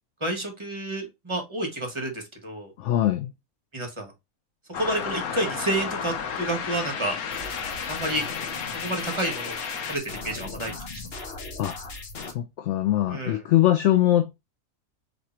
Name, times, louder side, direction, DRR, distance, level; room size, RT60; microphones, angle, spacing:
voice 1, 0.2-2.7 3.7-4.1 4.8-7.1 7.9-8.2 8.7-9.6 9.9-10.7 13.1-13.4, right 1 dB, 20° right, 1.3 m, -30 dB
voice 2, 2.8-3.3 11.6-11.7 12.3-14.3, left 13 dB, 65° left, 0.8 m, -22 dB
sound 1, 4.7-10.0, left 7 dB, 85° left, 1.3 m, -32 dB
sound 2, 7.3-12.3, left 3 dB, 50° left, 1.1 m, -38 dB
3.7 x 3.3 x 4.2 m
omnidirectional pair, 1.5 m